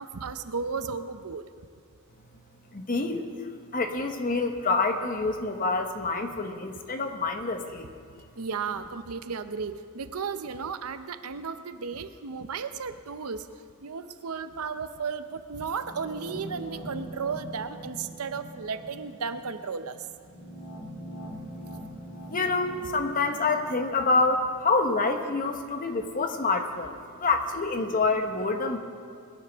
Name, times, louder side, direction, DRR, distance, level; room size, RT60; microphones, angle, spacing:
voice 1, 0.0-1.4 8.4-13.5 13.8-20.0, right 5 dB, 85° right, 10 dB, 0.7 m, -34 dB
voice 2, 2.7-7.9 22.3-28.8, left 3 dB, 40° left, 6 dB, 1.0 m, -27 dB
sound 1, 15.8-24.7, right 1 dB, 65° left, 2.5 m, -43 dB
21.0 x 12.0 x 3.5 m, 2.2 s
head